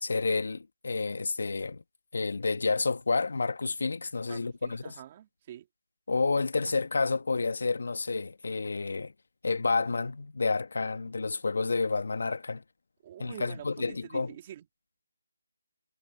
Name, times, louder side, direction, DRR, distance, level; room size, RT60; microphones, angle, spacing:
voice 1, 0.0-1.8 2.1-5.0 6.1-9.1 9.4-12.6 13.2-14.3, left 4 dB, 60° left, 1.5 m, -30 dB
voice 2, 4.3-5.7 13.0-14.7, right 11 dB, 20° right, 3.1 m, -46 dB
figure-of-eight pair, 170°, 0 cm